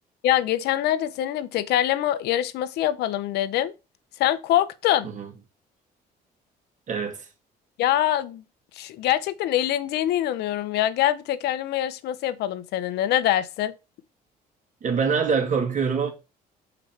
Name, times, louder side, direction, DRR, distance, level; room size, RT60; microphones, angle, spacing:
voice 1, 0.2-3.7 4.2-5.1 7.8-8.4 8.8-13.7, left 12 dB, 80° left, 0.9 m, -24 dB
voice 2, 6.9-7.3 14.8-16.1, right 5 dB, 45° right, 2.6 m, -24 dB
6.9 x 4.8 x 4.6 m
cardioid pair, 110°, 17 cm